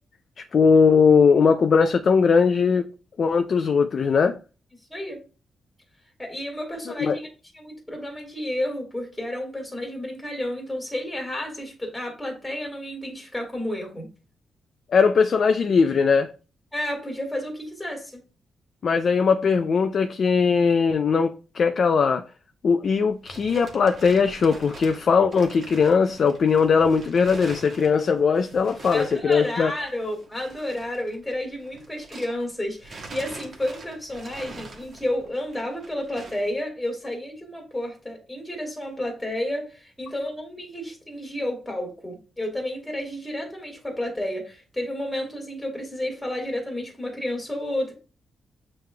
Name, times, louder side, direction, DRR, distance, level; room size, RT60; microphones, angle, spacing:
voice 1, 0.5-2.9 3.2-4.4 7.0-7.2 14.9-16.3 18.8-22.2 22.6-29.7, left 5 dB, 45° left, 0.3 m, -19 dB
voice 2, 6.2-7.3 7.5-14.1 16.7-18.2 28.9-47.9, left 1 dB, 5° left, 1.8 m, -31 dB
sound 1, 23.1-32.5 32.8-36.5, right 3 dB, 45° right, 1.2 m, -44 dB
7.6 x 3.1 x 2.2 m
wide cardioid pair, 150°, 0 cm